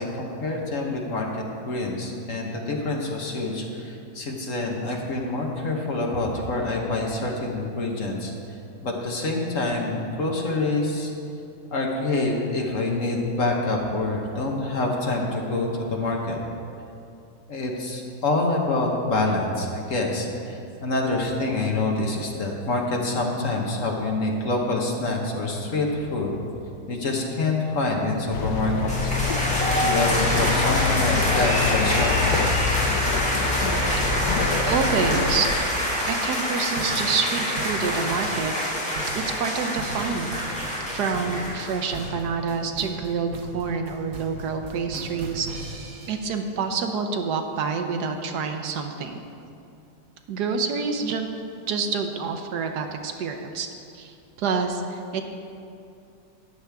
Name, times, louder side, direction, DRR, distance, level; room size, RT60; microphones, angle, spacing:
voice 1, 0.0-8.3 8.8-11.1 11.7-16.4 17.5-26.3 26.9-29.1 29.8-32.4, left 2 dB, 50° left, 0 dB, 1.4 m, -26 dB
sound 1, 28.3-35.6, left 5 dB, 75° left, 1.4 m, -26 dB
sound 2, 28.9-42.1, equal, 5° left, 1.7 m, -26 dB
voice 2, 34.7-38.5 39.1-40.3 40.6-45.5 46.1-49.2 50.3-51.3 51.7-53.7 53.9-54.1 54.4-55.2, right 5 dB, 70° right, 5 dB, 1.2 m, -27 dB
sound 3, 36.8-46.3, right 3 dB, 50° right, 1.4 m, -38 dB
13.0 x 9.7 x 3.5 m, 2.6 s
omnidirectional pair, 1.9 m